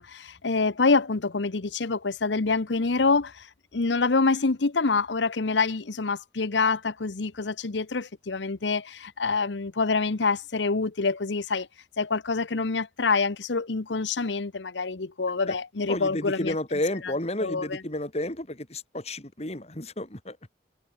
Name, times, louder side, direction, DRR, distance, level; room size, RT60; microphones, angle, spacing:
voice 1, 0.0-3.5 3.7-11.7 12.0-16.5 17.4-17.8, left 4 dB, 75° left, 0.9 m, -26 dB
voice 2, 15.9-20.4, left 1 dB, 35° left, 3.0 m, -31 dB
head